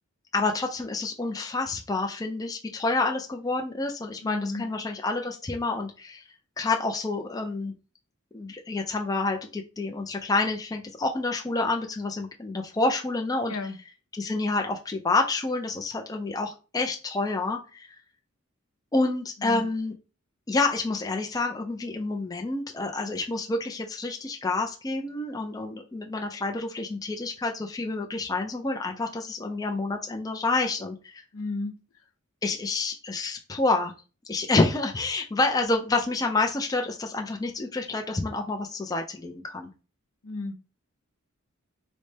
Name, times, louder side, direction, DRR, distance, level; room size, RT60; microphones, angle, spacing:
voice 1, 0.3-6.2 6.6-7.7 8.3-13.7 14.1-17.9 18.9-19.9 20.5-31.2 32.4-33.9 34.3-39.7, left 3 dB, 15° left, 2 dB, 0.4 m, -28 dB
voice 2, 4.2-4.6 13.5-13.7 19.4-19.6 31.3-31.7 40.2-40.6, left 3 dB, 70° left, 7 dB, 0.6 m, -32 dB
4.0 x 2.1 x 3.2 m, 0.33 s
head